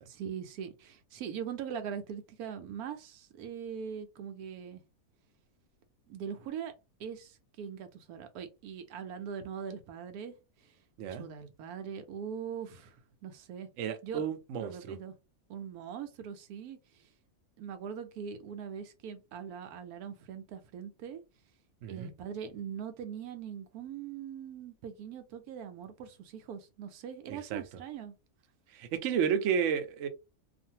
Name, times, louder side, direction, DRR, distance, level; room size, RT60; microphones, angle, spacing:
voice 1, 0.1-4.8 6.1-6.7 7.0-10.8 11.1-13.7 14.0-14.3 14.6-15.1 15.5-17.1 17.6-21.2 21.9-28.1, right 7 dB, 90° right, 1.1 m, -41 dB
voice 2, 13.8-14.7 21.8-22.1 27.3-27.6 28.7-30.1, right 7 dB, 65° right, 0.8 m, -31 dB
2.6 x 2.5 x 2.8 m
omnidirectional pair, 1.5 m